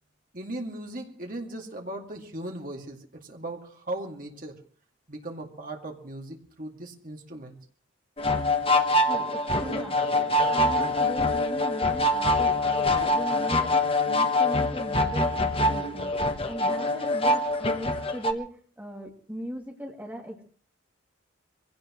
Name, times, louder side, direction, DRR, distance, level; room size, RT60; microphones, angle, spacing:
voice 1, 0.3-4.6 5.1-7.6, right 1 dB, 45° right, 2 dB, 2.3 m, -38 dB
sound 1, 8.2-18.3, left 1 dB, 30° left, 1.0 m, -24 dB
voice 2, 9.0-13.8 14.1-20.4, equal, 10° right, 0 dB, 2.6 m, -38 dB
24.0 x 16.5 x 3.1 m, 0.42 s
head